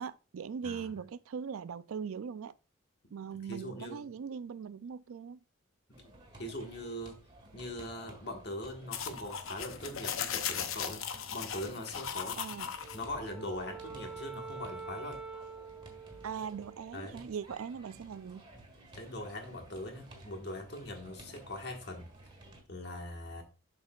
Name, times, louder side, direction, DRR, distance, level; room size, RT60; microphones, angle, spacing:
voice 1, 0.0-2.5 3.1-5.4 12.4-12.7 16.2-18.4, right 6 dB, 85° right, 0.4 m, -40 dB
voice 2, 3.4-4.1 6.0-6.1 6.4-7.2 7.5-11.0 11.3-15.2 16.9-17.3 18.9-22.1 22.7-23.4, left 1 dB, 50° left, 1.5 m, -41 dB
sound 1, 5.9-22.6, right 1 dB, 25° right, 1.5 m, -55 dB
sound 2, 8.9-13.0, left 8 dB, 80° left, 0.6 m, -38 dB
Wind instrument woodwind instrument, 12.8-17.3, right 5 dB, 5° right, 0.5 m, -46 dB
7.4 x 6.2 x 2.4 m
head